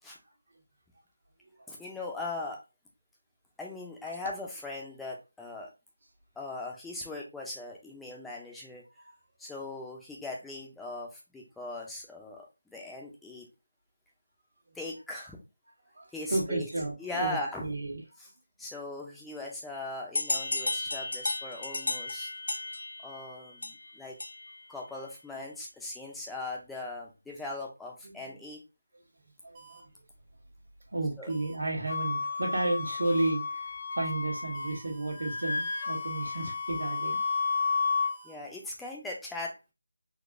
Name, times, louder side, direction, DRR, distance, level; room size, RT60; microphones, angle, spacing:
voice 1, 1.7-2.6 3.6-5.7 6.4-8.8 9.4-13.5 14.8-15.4 16.1-16.7 17.0-17.6 18.6-22.3 23.0-24.2 24.7-28.6 31.2-31.3 38.2-39.7, left 2 dB, 5° left, 0.5 m, -39 dB
voice 2, 15.9-18.0 28.0-28.4 29.4-30.0 30.9-37.2, right 2 dB, 70° right, 1.5 m, -33 dB
sound 1, 20.1-24.7, left 2 dB, 70° left, 0.3 m, -34 dB
sound 2, 29.5-29.8 31.3-31.5 33.0-33.3 34.5-38.3, right 6 dB, 20° right, 0.9 m, -53 dB
Wind instrument woodwind instrument, 31.9-34.8 35.1-38.1, left 4 dB, 45° left, 0.7 m, -32 dB
3.9 x 2.9 x 2.5 m
figure-of-eight pair, 170°, 0 cm